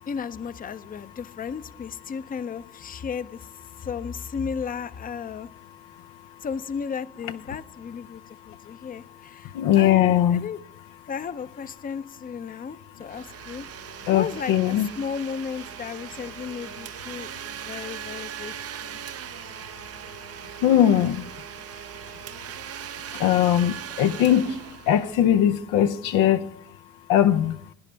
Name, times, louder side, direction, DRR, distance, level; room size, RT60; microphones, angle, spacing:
voice 1, 0.1-3.5 3.8-5.5 6.4-10.6 11.1-13.7 14.1-18.5 18.8-19.0, left 6 dB, 30° left, 0.5 m, -34 dB
voice 2, 9.4-10.4 14.1-14.9 17.1-17.2 19.3-20.2 20.6-21.3 22.3-22.5 23.1-26.5 27.1-27.6, left 11 dB, 90° left, 0.6 m, -21 dB
Domestic sounds home sounds, 13.0-25.6, right 10 dB, 50° right, 0.5 m, -39 dB
17.5 x 9.9 x 3.3 m
supercardioid pair, 60°, 31 cm